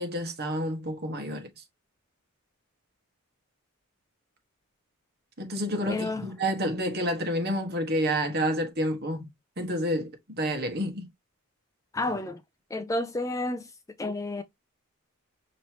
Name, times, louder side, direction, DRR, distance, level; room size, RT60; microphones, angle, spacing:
voice 1, 0.0-1.6 5.4-9.3 9.6-11.1, equal, 45° right, 1.4 m, -29 dB
voice 2, 5.9-6.3 11.9-12.4 12.7-13.7 14.0-14.4, left 2 dB, 15° left, 0.4 m, -30 dB
5.4 x 3.1 x 2.9 m
head